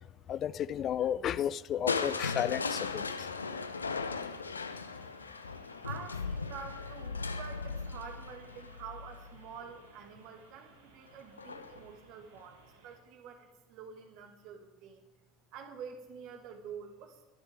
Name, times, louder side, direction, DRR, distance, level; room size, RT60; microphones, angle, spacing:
voice 1, 0.3-3.0, left 10 dB, 40° left, 0.4 m, -32 dB
Crushing, 1.9-9.8 11.4-11.9 12.4-12.5, left 4 dB, 85° left, 0.6 m, -37 dB
sound 1, 1.9-13.0, right 3 dB, 75° right, 2.7 m, -60 dB
voice 2, 5.8-12.6 12.8-15.0 15.5-17.2, right 6 dB, 55° right, 2.2 m, -47 dB
23.5 x 11.5 x 3.6 m
figure-of-eight pair, 70°, 0 cm